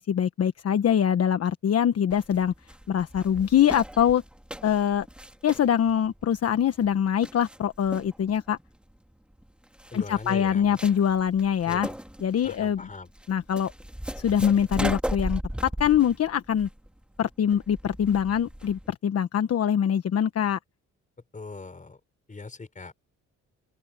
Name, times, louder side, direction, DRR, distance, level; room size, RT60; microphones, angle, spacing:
voice 1, 0.0-2.5 2.9-4.2 4.6-5.1 5.4-8.6 9.9-11.9 12.2-12.8 13.3-13.7 14.1-15.4 15.8-16.7 17.2-20.6, left 9 dB, 55° left, 1.2 m, -23 dB
sound 1, 2.1-18.9, equal, 5° right, 2.6 m, -37 dB
voice 2, 9.9-10.8 11.7-12.0 12.4-13.1 21.3-22.0 22.3-22.9, left 3 dB, 25° left, 5.0 m, -40 dB
open air
cardioid pair, 90°, 30 cm